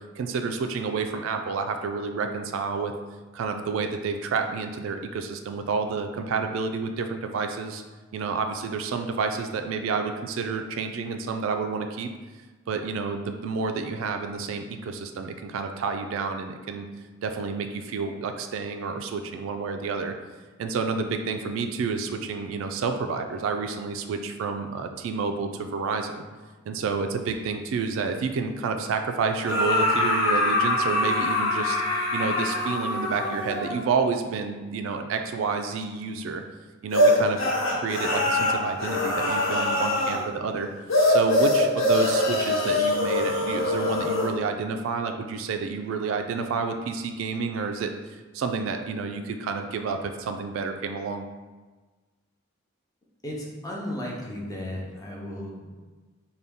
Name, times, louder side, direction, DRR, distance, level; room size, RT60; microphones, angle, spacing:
voice 1, 0.2-2.9 3.3-7.8 8.1-12.1 12.7-16.9 17.2-20.1 20.6-26.2 26.7-31.8 32.1-36.4 36.8-37.4 37.8-40.7 41.1-51.2, right 4 dB, 70° right, 5 dB, 0.3 m, -29 dB
sound 1, 29.5-33.9 36.9-40.2 40.9-44.3, left 1 dB, 75° left, 1.3 m, -23 dB
voice 2, 53.2-55.7, left 1 dB, 15° left, -3 dB, 0.6 m, -35 dB
4.0 x 2.3 x 3.5 m, 1.3 s
head